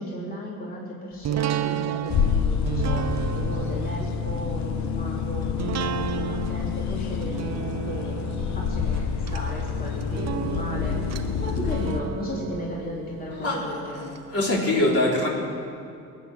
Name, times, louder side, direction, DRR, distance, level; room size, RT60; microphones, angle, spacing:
voice 1, 0.0-14.2, left 1 dB, 30° left, -5 dB, 3.2 m, -36 dB
sound 1, 1.2-14.2 14.6-14.7, right 9 dB, 60° right, 0.8 m, -33 dB
sound 2, 2.1-12.0, left 6 dB, 65° left, 1.0 m, -28 dB
voice 2, 14.3-15.3, left 1 dB, 50° left, -3 dB, 3.9 m, -22 dB
20.5 x 9.4 x 6.3 m, 2.5 s
cardioid pair, 90°, 30 cm